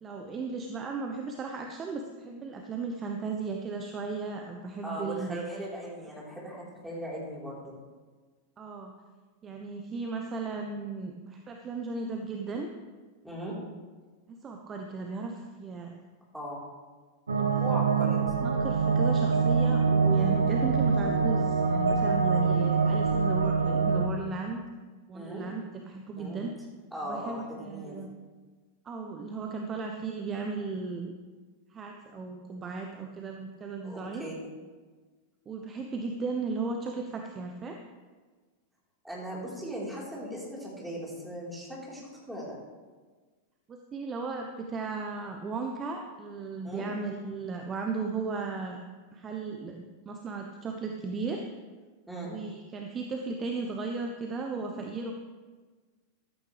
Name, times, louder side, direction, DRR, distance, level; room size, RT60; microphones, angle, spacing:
voice 1, 0.0-5.6 8.6-8.9 9.4-12.7 14.3-16.0 17.3-17.7 18.4-24.6 25.1-26.5 27.0-28.1 28.8-31.1 31.7-34.2 35.5-37.8 43.7-48.8 49.1-51.5 52.2-55.1, right 4 dB, 25° right, 3 dB, 1.1 m, -36 dB
voice 2, 4.8-7.8 13.2-13.5 16.3-16.6 17.6-18.5 22.2-22.4 25.1-25.5 26.2-26.4 26.9-28.0 33.8-34.3 39.0-42.5 46.6-46.9 52.1-52.3, equal, ahead, -5 dB, 4.4 m, -38 dB
sound 1, 17.3-24.1, right 5 dB, 75° right, 0.9 m, -25 dB
14.5 x 12.5 x 3.4 m, 1.4 s
figure-of-eight pair, 90°, 0 cm